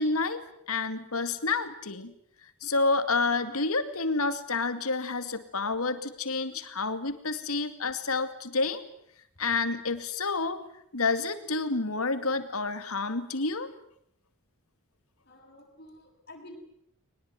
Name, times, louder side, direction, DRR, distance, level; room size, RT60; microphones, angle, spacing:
voice 1, 0.0-2.1 2.6-8.8 9.4-10.6 10.9-13.7, left 3 dB, 80° left, 10 dB, 2.4 m, -29 dB
voice 2, 15.2-16.6, left 1 dB, 45° left, 2 dB, 6.6 m, -50 dB
22.5 x 20.5 x 9.4 m, 0.72 s
head